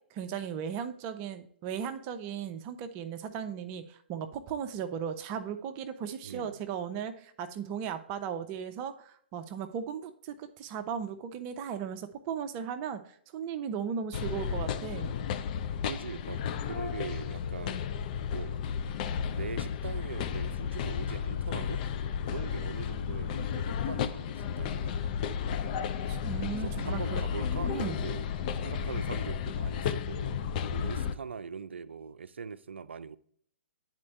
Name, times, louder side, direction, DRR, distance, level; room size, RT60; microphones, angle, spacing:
voice 1, 0.1-15.1 26.1-27.2 27.7-28.0, right 7 dB, 30° right, 0.7 m, -37 dB
voice 2, 6.2-6.6 15.9-17.9 18.3-18.6 19.3-21.8 22.3-25.1 25.8-25.9 26.6-28.3 28.6-30.4 30.7-33.2, right 6 dB, 75° right, 0.5 m, -42 dB
sound 1, 14.1-31.1, left 7 dB, 45° left, 0.5 m, -33 dB
9.6 x 4.4 x 3.3 m
figure-of-eight pair, 125°, 6 cm